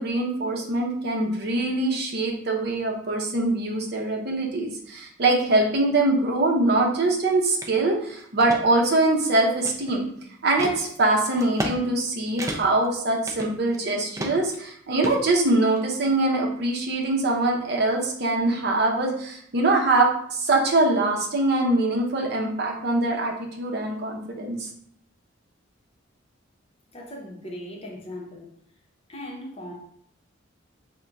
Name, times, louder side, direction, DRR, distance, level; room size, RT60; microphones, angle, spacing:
voice 1, 0.0-10.1 10.4-24.7, right 2 dB, 55° right, 0 dB, 0.7 m, -23 dB
sound 1, 7.6-7.7 8.2-8.6 9.1-10.1 10.6-10.8 11.4-11.8 12.0-12.1 12.4-12.9 13.3-13.8 14.2-14.6 15.0-15.8, right 1 dB, 15° right, 0.3 m, -33 dB
voice 2, 26.9-28.5 29.1-29.7, left 1 dB, 30° left, -2 dB, 0.8 m, -38 dB
3.5 x 2.2 x 3.9 m, 0.66 s
head